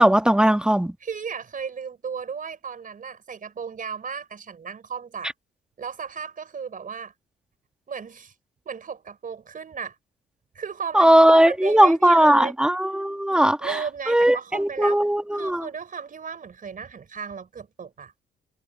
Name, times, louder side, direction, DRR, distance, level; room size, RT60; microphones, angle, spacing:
voice 1, 0.0-0.9 10.9-13.8 14.1-15.7, right 1 dB, 5° right, 1.5 m, -18 dB
voice 2, 1.0-5.3 5.8-7.1 7.9-8.3 8.6-9.9 10.5-12.5 13.3-15.0 15.4-18.1, right 6 dB, 45° right, 4.7 m, -35 dB
cardioid pair, 90°, 20 cm